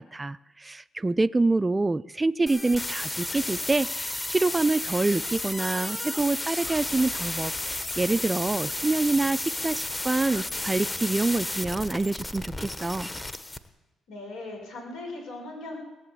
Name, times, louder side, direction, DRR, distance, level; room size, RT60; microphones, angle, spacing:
voice 1, 0.0-13.1, right 3 dB, 20° right, 18 dB, 0.4 m, -26 dB
sound 1, 2.5-13.6, left 1 dB, 20° left, 1.1 m, -33 dB
sound 2, 6.6-9.8 10.1-10.2, left 2 dB, 35° left, 2.5 m, -50 dB
voice 2, 14.1-15.8, left 2 dB, 85° left, 0 dB, 5.7 m, -38 dB
20.0 x 7.9 x 8.1 m, 1.1 s
supercardioid pair, 70°, 0 cm